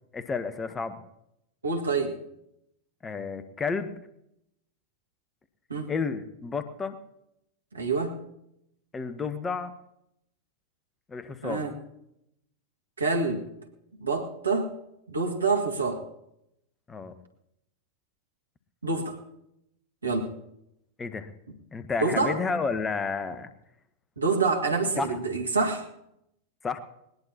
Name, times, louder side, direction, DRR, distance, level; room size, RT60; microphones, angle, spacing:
voice 1, 0.1-1.0 3.0-3.9 5.9-7.0 8.9-9.7 11.1-11.7 16.9-17.1 21.0-21.3 21.7-23.5 25.0-25.1 26.6-26.8, left 5 dB, 15° left, 12 dB, 1.0 m, -31 dB
voice 2, 1.6-2.2 5.7-5.9 7.7-8.2 11.4-11.7 13.0-13.4 14.0-14.7 15.1-16.1 18.8-19.2 20.0-20.3 22.0-22.4 24.2-25.9, right 4 dB, 75° right, 3 dB, 1.8 m, -27 dB
19.5 x 19.5 x 2.9 m, 0.82 s
figure-of-eight pair, 90°, 0 cm